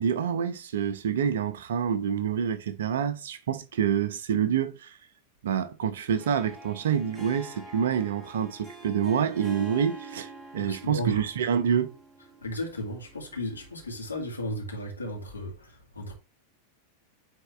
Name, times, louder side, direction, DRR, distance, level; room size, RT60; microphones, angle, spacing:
voice 1, 0.0-5.0 5.4-11.9, right 8 dB, 60° right, 0.7 m, -27 dB
Harp, 6.1-14.4, right 4 dB, 15° right, 1.5 m, -46 dB
voice 2, 10.6-11.2 12.4-16.1, equal, 80° left, 2.2 m, -35 dB
9.0 x 3.8 x 3.2 m
figure-of-eight pair, 90°, 0 cm